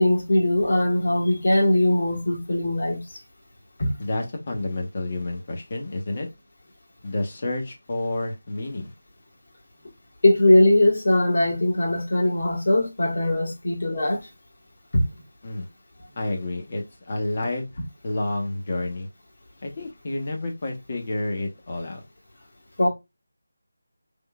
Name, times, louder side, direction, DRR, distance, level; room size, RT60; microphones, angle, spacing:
voice 1, 0.0-3.0 3.8-3.9 10.2-14.3 14.9-15.0 22.8-22.9, left 1 dB, 45° left, 1.6 m, -20 dB
voice 2, 4.0-6.3 7.0-8.9 15.4-15.7 16.2-17.6 18.0-19.1 19.6-22.0, left 2 dB, 30° left, 1.1 m, -29 dB
5.3 x 3.6 x 2.3 m
figure-of-eight pair, 175°, 0 cm